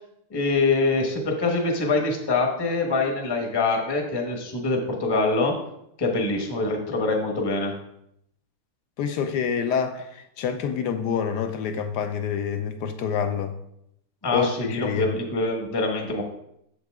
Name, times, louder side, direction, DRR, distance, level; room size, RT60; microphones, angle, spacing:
voice 1, 0.3-5.5 6.0-7.7 14.2-16.2, left 3 dB, 20° left, 1 dB, 0.7 m, -24 dB
voice 2, 9.0-13.5 14.3-15.1, left 7 dB, 75° left, 8 dB, 1.0 m, -27 dB
7.5 x 6.7 x 3.6 m, 0.77 s
omnidirectional pair, 2.3 m